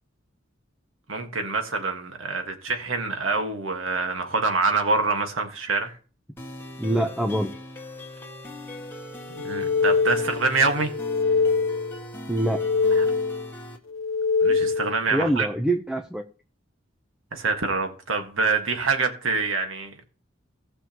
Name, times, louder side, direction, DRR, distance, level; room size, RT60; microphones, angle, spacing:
voice 1, 1.1-6.0 9.4-10.9 12.9-13.1 14.4-15.5 17.3-20.0, right 4 dB, 90° right, 1.7 m, -26 dB
sound 1, 6.4-13.8, left 1 dB, 10° left, 1.9 m, -40 dB
voice 2, 6.8-7.5 12.3-12.6 14.5-14.6 15.1-16.2, right 1 dB, 5° right, 0.7 m, -25 dB
sound 2, 9.4-10.5 10.9-12.0 12.4-13.5 13.9-15.0, left 4 dB, 75° left, 0.7 m, -24 dB
18.5 x 6.3 x 3.0 m
head